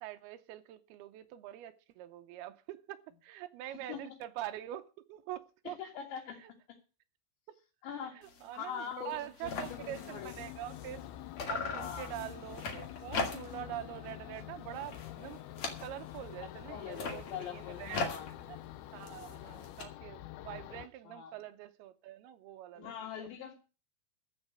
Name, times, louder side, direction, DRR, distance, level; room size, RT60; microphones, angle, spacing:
voice 1, 0.0-5.8 6.4-6.5 7.5-7.6 8.1-11.0 11.5-18.1 18.5-18.6 18.9-23.3, right 13 dB, 85° right, 2.2 m, -45 dB
voice 2, 5.8-6.5 7.8-8.2 8.5-10.4 11.7-12.2 16.7-18.3 21.1-21.4 22.8-23.5, left 8 dB, 70° left, 4.0 m, -43 dB
sound 1, 8.2-8.5 8.8-8.9 9.1-11.1 11.4-13.7 14.1-14.4 14.7-16.3 16.8-19.8, left 4 dB, 45° left, 2.9 m, -40 dB
sound 2, 9.4-20.9, left 13 dB, 85° left, 2.2 m, -47 dB
14.5 x 5.8 x 8.6 m
omnidirectional pair, 5.6 m